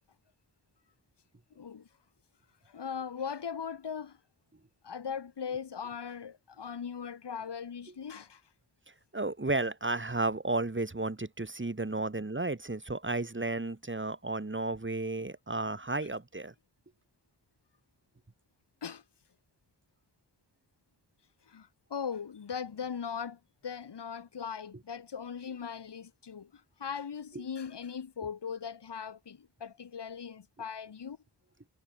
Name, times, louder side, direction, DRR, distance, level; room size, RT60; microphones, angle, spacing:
voice 1, 1.6-1.9 2.7-4.2 4.8-8.4 18.8-19.0 21.5-31.2, left 7 dB, 75° left, 3.5 m, -39 dB
voice 2, 9.1-16.5 27.3-27.4, right 2 dB, 25° right, 3.8 m, -33 dB
cardioid pair, 40°, 42 cm